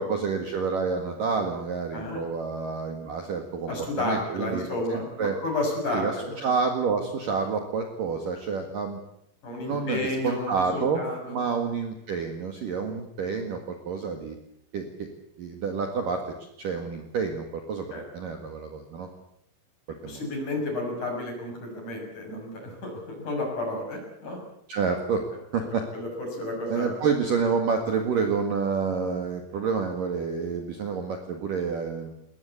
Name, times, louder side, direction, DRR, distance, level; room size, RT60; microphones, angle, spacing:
voice 1, 0.0-3.7 4.0-5.4 5.9-9.0 9.6-14.3 14.7-15.1 15.4-16.2 16.6-17.9 18.1-19.1 20.0-20.2 24.7-25.3 25.5-25.9 26.7-32.1, right 5 dB, 55° right, 4 dB, 2.8 m, -28 dB
voice 2, 1.9-2.3 3.7-6.4 9.4-11.4 17.9-18.0 20.0-24.4 25.6-26.9, left 2 dB, 35° left, 2 dB, 7.7 m, -32 dB
21.5 x 20.0 x 8.4 m, 0.76 s
omnidirectional pair, 5.9 m